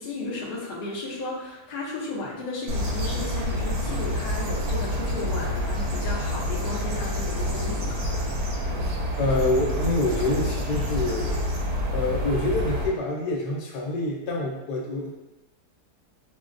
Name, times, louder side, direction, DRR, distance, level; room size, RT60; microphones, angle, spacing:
voice 1, 0.0-8.4, left 2 dB, 45° left, -4 dB, 0.6 m, -34 dB
sound 1, 2.7-12.9, left 1 dB, 75° right, 1.1 m, -27 dB
voice 2, 9.2-11.3 11.9-15.1, left 2 dB, 80° left, -1 dB, 1.2 m, -26 dB
4.8 x 2.1 x 2.5 m, 1.0 s
omnidirectional pair, 1.7 m